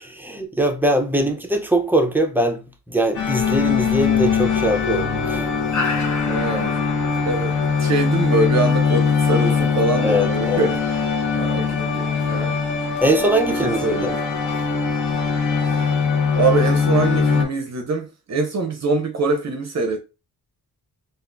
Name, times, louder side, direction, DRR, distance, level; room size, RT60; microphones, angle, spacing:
voice 1, 0.2-5.5 10.0-10.7 13.0-14.1, right 1 dB, 5° right, 0.5 m, -21 dB
sound 1, 3.1-17.4, left 5 dB, 55° left, 0.8 m, -21 dB
voice 2, 6.2-6.7 7.3-12.5 13.5-14.2 15.7-15.9 16.3-20.0, right 3 dB, 45° right, 0.6 m, -24 dB
3.5 x 2.4 x 2.4 m
cardioid pair, 100°, 36 cm